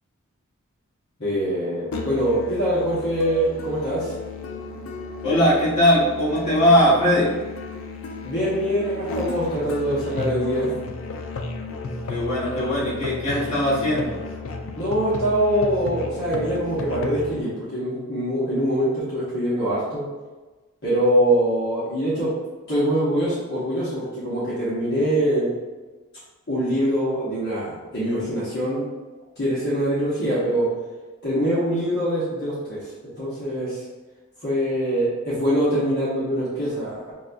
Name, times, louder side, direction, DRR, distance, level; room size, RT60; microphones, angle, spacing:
voice 1, 1.2-4.1 8.2-10.7 14.8-20.0 20.8-22.3 22.7-25.6 26.5-28.8 29.4-30.7 31.2-32.8 33.2-33.8 34.4-37.1, equal, 50° left, -9 dB, 1.0 m, -23 dB
Musical instrument, 1.9-17.4, left 3 dB, 65° left, 0.4 m, -34 dB
voice 2, 5.2-7.3 12.1-14.2, equal, 30° left, -9 dB, 1.3 m, -20 dB
5.9 x 2.2 x 2.5 m, 1.3 s
head